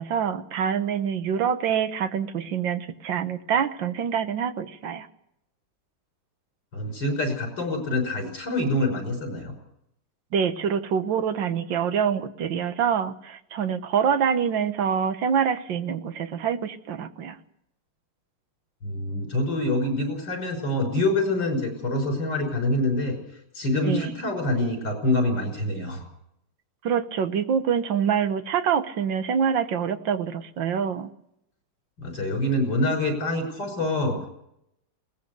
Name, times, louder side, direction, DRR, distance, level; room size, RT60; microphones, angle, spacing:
voice 1, 0.0-5.1 10.3-17.4 23.8-24.1 26.8-31.1, right 7 dB, 65° right, 10 dB, 1.8 m, -25 dB
voice 2, 6.7-9.5 18.8-23.1 23.5-26.0 32.0-34.2, left 1 dB, 60° left, 4 dB, 6.6 m, -26 dB
21.5 x 19.0 x 6.7 m, 0.78 s
omnidirectional pair, 2.3 m